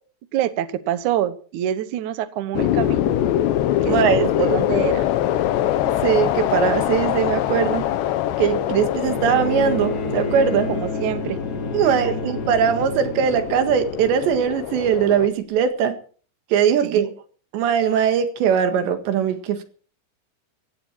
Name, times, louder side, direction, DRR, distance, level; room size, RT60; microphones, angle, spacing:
voice 1, 0.3-3.2 3.8-5.1 10.7-11.4 11.8-11.9 16.8-17.1, right 11 dB, 70° right, 13 dB, 1.9 m, -26 dB
sound 1, 2.5-15.3, left 12 dB, 90° left, 3.3 m, -24 dB
voice 2, 3.9-4.3 5.8-7.8 8.4-10.7 11.7-16.0 16.5-17.1 17.5-19.6, right 8 dB, 85° right, 7 dB, 4.1 m, -20 dB
Bowed string instrument, 9.0-14.5 15.6-15.7, right 1 dB, 40° left, 1.3 m, -31 dB
17.5 x 15.5 x 4.6 m, 0.42 s
omnidirectional pair, 4.9 m